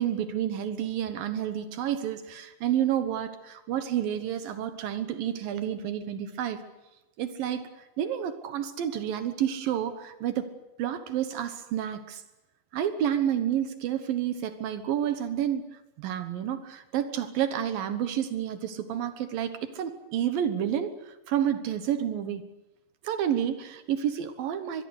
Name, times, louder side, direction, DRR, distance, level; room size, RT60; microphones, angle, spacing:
voice 1, 0.0-6.6 7.2-7.7 8.0-10.5 10.8-12.2 12.7-15.6 16.0-22.4 23.0-24.9, right 10 dB, 70° right, 10 dB, 2.6 m, -30 dB
24.0 x 21.5 x 8.1 m, 0.99 s
omnidirectional pair, 4.8 m